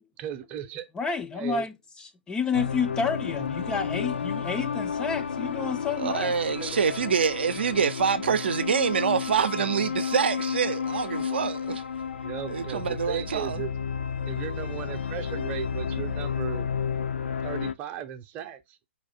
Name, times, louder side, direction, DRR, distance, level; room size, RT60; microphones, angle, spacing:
voice 1, 0.2-0.9 1.3-1.7 6.6-6.8 12.2-13.7 14.3-16.7 17.4-18.8, right 10 dB, 25° right, 0.7 m, -36 dB
voice 2, 1.0-6.3, left 5 dB, 10° left, 0.3 m, -30 dB
sound 1, 2.5-17.7, left 7 dB, 70° left, 0.5 m, -32 dB
voice 3, 6.0-11.8 12.5-13.6, right 6 dB, 65° right, 0.6 m, -26 dB
4.4 x 2.6 x 4.1 m
figure-of-eight pair, 125°, 6 cm